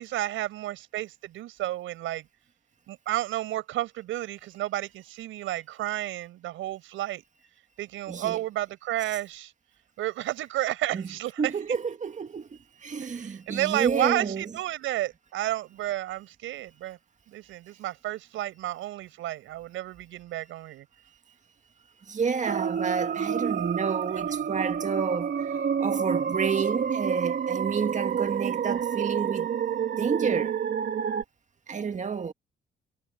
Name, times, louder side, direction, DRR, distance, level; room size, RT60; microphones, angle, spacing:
voice 1, 0.0-2.3 2.9-7.2 7.8-9.5 10.0-11.5 13.0-17.0 17.3-20.9, right 14 dB, 90° right, 5.9 m, -31 dB
voice 2, 8.1-8.5 9.1-9.2 10.9-14.6 22.1-29.5 30.0-30.6 31.7-32.3, right 6 dB, 40° right, 1.9 m, -30 dB
sound 1, 22.5-31.2, right 7 dB, 55° right, 2.2 m, -29 dB
cardioid pair, 90°, 20 cm